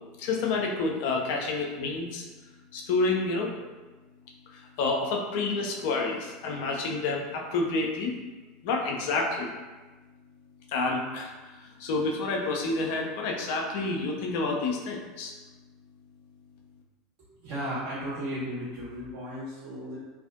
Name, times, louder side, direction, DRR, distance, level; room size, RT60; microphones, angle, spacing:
voice 1, 0.2-2.3 2.7-3.5 4.8-8.1 8.6-9.5 10.7-11.3 11.8-15.3, left 3 dB, 55° left, 0 dB, 0.4 m, -29 dB
voice 2, 17.4-20.0, equal, 50° right, -9 dB, 1.3 m, -35 dB
2.5 x 2.4 x 2.4 m, 1.2 s
figure-of-eight pair, 75°, 0 cm